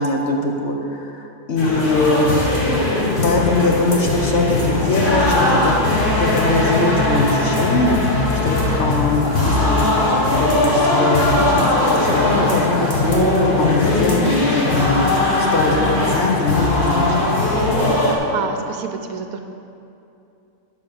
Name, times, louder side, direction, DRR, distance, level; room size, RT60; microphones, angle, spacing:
voice 1, 0.0-2.4 3.2-5.9 6.2-8.0 8.4-9.9 10.2-12.9 13.6-15.1 15.5-17.3, left 2 dB, 55° left, 1 dB, 1.0 m, -22 dB
sound 1, 1.6-18.2, left 2 dB, 35° left, 1.4 m, -19 dB
voice 2, 18.0-19.4, right 6 dB, 70° right, 6 dB, 1.0 m, -29 dB
11.5 x 4.8 x 7.1 m, 2.7 s
omnidirectional pair, 1.6 m